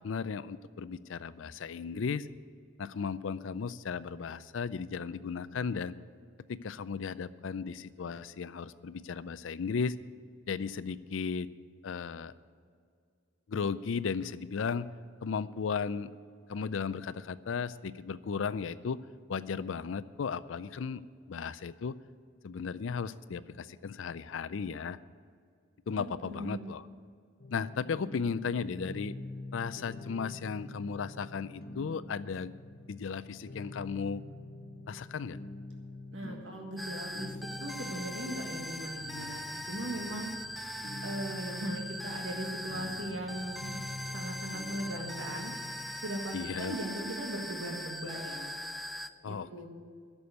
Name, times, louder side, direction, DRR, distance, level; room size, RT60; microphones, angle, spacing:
voice 1, 0.0-2.3 2.8-5.9 6.5-10.0 10.5-11.5 11.8-12.3 13.5-14.9 15.2-16.1 16.5-19.0 19.3-21.0 21.3-22.0 22.4-25.0 25.9-26.9 27.5-29.1 29.5-32.5 32.9-34.2 34.9-35.4 46.3-46.7 49.2-49.7, left 5 dB, 80° left, 16 dB, 0.4 m, -35 dB
voice 2, 26.0-26.7 36.1-37.3 37.6-40.3 41.0-43.6 44.1-45.5 46.0-48.5 49.2-49.7, right 1 dB, 70° right, 1 dB, 1.6 m, -39 dB
sound 1, 27.4-46.0, left 2 dB, 50° left, 1.0 m, -46 dB
sound 2, 36.8-49.1, equal, ahead, 0.3 m, -41 dB
11.0 x 6.9 x 9.3 m, 2.2 s
head